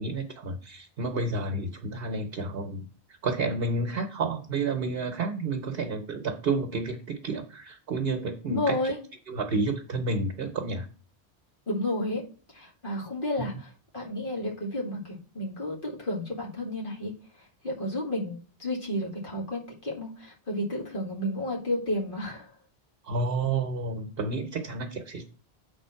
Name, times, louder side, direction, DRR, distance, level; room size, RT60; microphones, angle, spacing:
voice 1, 0.0-2.9 3.2-8.9 9.3-10.9 13.4-13.5 23.0-25.2, right 3 dB, 60° right, 4 dB, 1.0 m, -30 dB
voice 2, 8.5-9.0 11.7-12.2 12.5-17.1 17.6-22.5, left 1 dB, 50° left, -3 dB, 2.0 m, -31 dB
8.0 x 3.6 x 5.6 m, 0.40 s
omnidirectional pair, 1.1 m